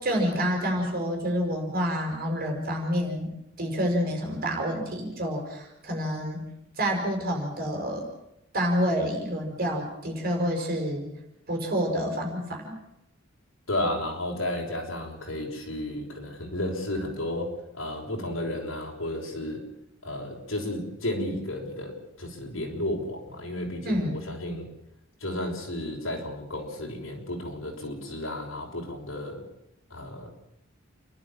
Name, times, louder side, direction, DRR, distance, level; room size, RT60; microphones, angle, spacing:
voice 1, 0.0-3.3 3.6-6.4 6.8-8.0 8.5-11.1 11.5-12.8 23.8-24.3, equal, 50° right, 2 dB, 6.0 m, -28 dB
voice 2, 13.7-17.5 17.7-19.6 20.0-24.7 25.2-29.4 29.9-30.3, left 1 dB, 80° left, 0 dB, 6.1 m, -33 dB
30.0 x 12.0 x 8.8 m, 0.84 s
head